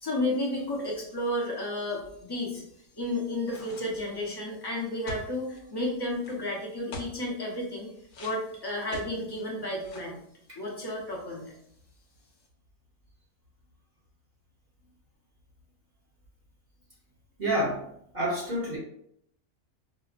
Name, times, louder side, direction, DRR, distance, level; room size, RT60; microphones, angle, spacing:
voice 1, 0.0-2.7 2.9-7.9 8.2-10.2 10.6-11.5, left 1 dB, 25° left, -3 dB, 0.7 m, -32 dB
sound 1, 3.5-4.2 5.1-5.6 6.2-6.3 6.9-7.2 8.1-9.4 9.8-10.2, equal, 65° left, 1.0 m, -42 dB
voice 2, 17.4-17.9 18.1-18.8, right 1 dB, 50° right, -5 dB, 1.1 m, -28 dB
4.8 x 2.0 x 2.4 m, 0.71 s
omnidirectional pair, 1.4 m